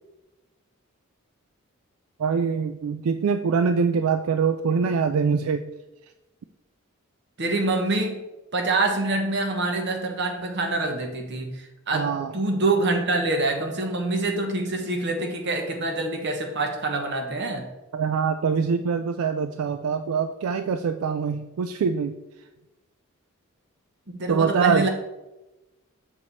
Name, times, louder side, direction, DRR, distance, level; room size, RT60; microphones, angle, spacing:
voice 1, 2.2-5.6 11.9-12.3 17.9-22.2 24.3-24.9, right 5 dB, 80° right, 9 dB, 0.3 m, -24 dB
voice 2, 7.4-8.2 8.5-17.7 24.1-24.9, right 2 dB, 55° right, 4 dB, 1.0 m, -26 dB
7.3 x 4.9 x 4.1 m, 1.0 s
head